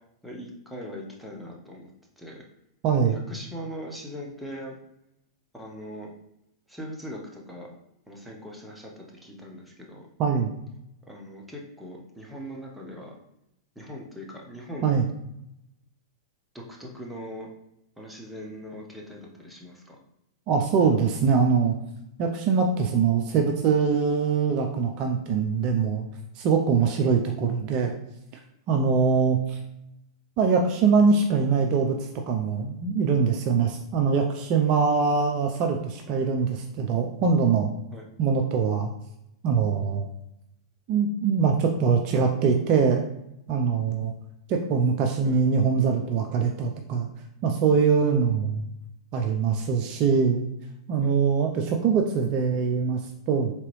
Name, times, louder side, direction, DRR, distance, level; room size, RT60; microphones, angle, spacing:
voice 1, 0.2-1.9 2.2-2.4 3.1-4.8 5.5-6.1 6.7-7.7 8.1-10.1 11.1-13.1 13.7-14.9 16.5-17.5 18.0-20.0 26.8-27.0 36.1-36.2 37.9-38.1 45.2-45.4 51.0-51.2, equal, ahead, -2 dB, 0.9 m, -40 dB
voice 2, 2.8-3.2 10.2-10.5 14.8-15.0 20.5-21.7 22.2-26.0 26.4-27.9 28.7-29.6 30.4-37.7 38.2-38.9 39.4-40.1 40.9-43.1 43.5-44.1 44.5-47.1 47.4-48.7 49.1-50.4 50.9-53.5, right 5 dB, 40° right, 4 dB, 0.4 m, -23 dB
3.7 x 2.9 x 3.1 m, 0.80 s
hypercardioid pair, 105°, 2 cm